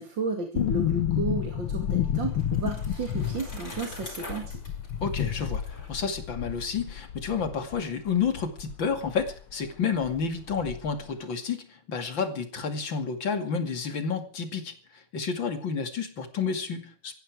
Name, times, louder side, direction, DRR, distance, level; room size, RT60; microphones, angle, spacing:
voice 1, 0.0-4.6, right 4 dB, 60° right, 4 dB, 3.0 m, -33 dB
sound 1, 0.6-9.4 9.6-9.7 10.0-11.0 11.3-11.4, left 10 dB, 85° left, 2.2 m, -31 dB
Bicycle, 1.9-6.7, left 2 dB, 40° left, 6.3 m, -45 dB
voice 2, 5.0-17.1, left 6 dB, 60° left, 7 dB, 3.1 m, -30 dB
19.0 x 15.0 x 4.8 m, 0.43 s
omnidirectional pair, 2.3 m